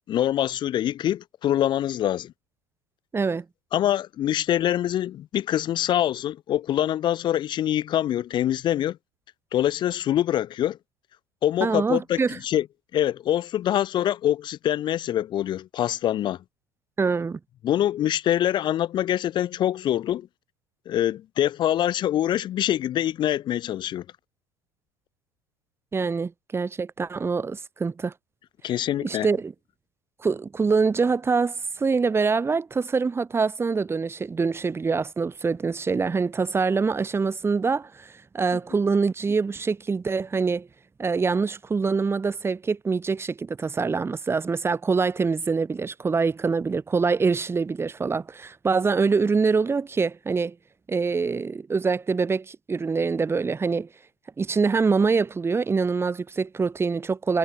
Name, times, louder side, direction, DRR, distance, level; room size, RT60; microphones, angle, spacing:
voice 1, 0.1-2.3 3.7-9.0 9.5-10.8 11.4-12.7 12.9-16.4 17.6-20.3 20.9-24.0 28.6-29.3, left 12 dB, 40° left, 0.5 m, -24 dB
voice 2, 3.1-3.4 11.6-12.4 17.0-17.4 25.9-28.1 29.0-29.5 30.2-40.7 41.0-50.5 50.9-53.9 54.4-57.4, right 4 dB, 20° right, 1.5 m, -25 dB
hypercardioid pair, 75°, 12 cm